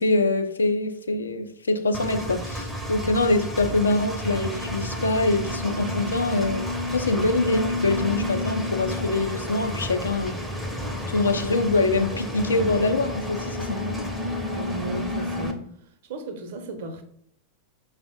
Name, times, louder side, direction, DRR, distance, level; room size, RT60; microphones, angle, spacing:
voice 1, 0.0-6.7 6.9-10.4 11.1-14.0, left 2 dB, 75° left, 0.3 m, -24 dB
Engine, 1.9-15.5, left 1 dB, 5° right, 0.5 m, -30 dB
voice 2, 14.5-15.6 16.1-17.0, right 2 dB, 55° right, 0.5 m, -34 dB
4.8 x 2.0 x 2.7 m
figure-of-eight pair, 90°, 0 cm